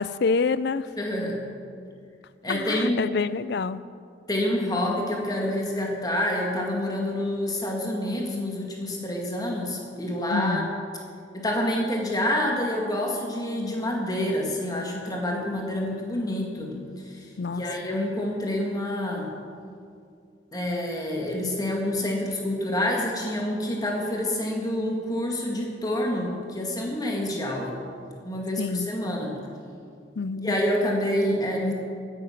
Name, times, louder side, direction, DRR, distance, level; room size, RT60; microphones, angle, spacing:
voice 1, 0.0-0.8 2.5-3.8 10.3-10.7 17.4-17.6 28.6-28.9 30.2-30.5, left 4 dB, 65° left, 15 dB, 0.4 m, -27 dB
voice 2, 1.0-1.4 2.4-3.1 4.3-10.7 11.3-19.3 20.5-27.8 28.2-29.4 30.4-31.7, left 1 dB, 20° left, 0 dB, 1.9 m, -27 dB
15.5 x 9.9 x 5.9 m, 2.3 s
head